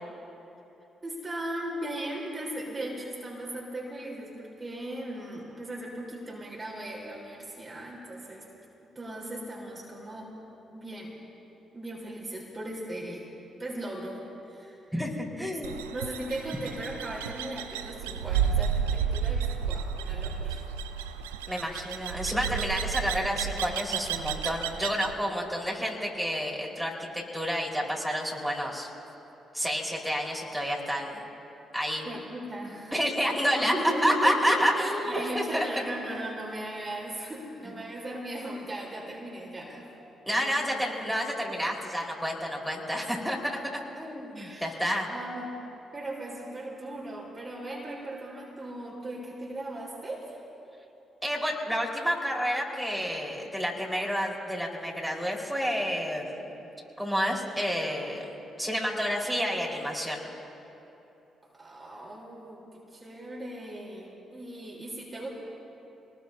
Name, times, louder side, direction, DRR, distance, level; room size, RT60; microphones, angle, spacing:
voice 1, 1.0-8.5 9.0-10.3 10.7-11.1 11.7-13.3 13.6-14.2 14.5-14.8 15.9-20.6 32.0-32.9 33.4-39.9 40.3-40.7 44.4-44.8 45.1-45.5 45.9-50.4 61.4-65.3, right 1 dB, 30° right, -3 dB, 3.5 m, -37 dB
voice 2, 14.9-15.7 21.5-28.9 29.5-31.3 31.7-32.1 32.9-33.7 34.0-35.6 40.3-45.1 51.2-56.5 57.0-58.2 58.6-60.3, equal, ahead, -3 dB, 4.4 m, -29 dB
sound 1, 15.6-25.1, right 8 dB, 85° right, 0.5 m, -32 dB
26.5 x 20.0 x 2.7 m, 2.9 s
hypercardioid pair, 40°, 0 cm